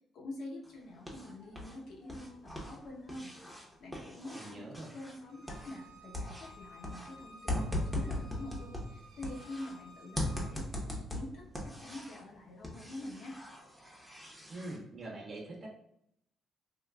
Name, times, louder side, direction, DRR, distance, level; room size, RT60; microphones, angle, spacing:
voice 1, 0.1-10.6 10.9-13.3, left 2 dB, 75° left, -2 dB, 0.8 m, -46 dB
sound 1, 0.6-1.8 2.0-5.9 6.1-9.7 10.2-12.3 12.6-14.8, left 1 dB, ahead, 0.8 m, -39 dB
voice 2, 4.3-4.9 14.5-15.7, right 2 dB, 45° right, -1 dB, 1.0 m, -44 dB
Bowed string instrument, 5.3-10.5, left 1 dB, 80° right, 0.7 m, -55 dB
3.6 x 2.4 x 2.3 m, 0.73 s
cardioid pair, 90°, 0 cm